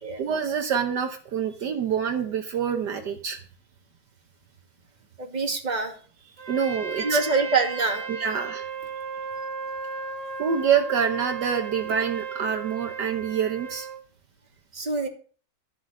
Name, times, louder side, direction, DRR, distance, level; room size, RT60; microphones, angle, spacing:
voice 1, 0.2-3.4 6.5-7.2 8.1-8.7 10.4-13.9, right 7 dB, 70° right, 5 dB, 1.6 m, -26 dB
voice 2, 5.2-5.9 7.0-8.0 14.7-15.1, right 4 dB, 25° right, 2 dB, 2.2 m, -25 dB
Trumpet, 6.4-14.0, right 4 dB, 45° right, 1.7 m, -35 dB
13.0 x 7.8 x 6.4 m, 0.42 s
omnidirectional pair, 2.0 m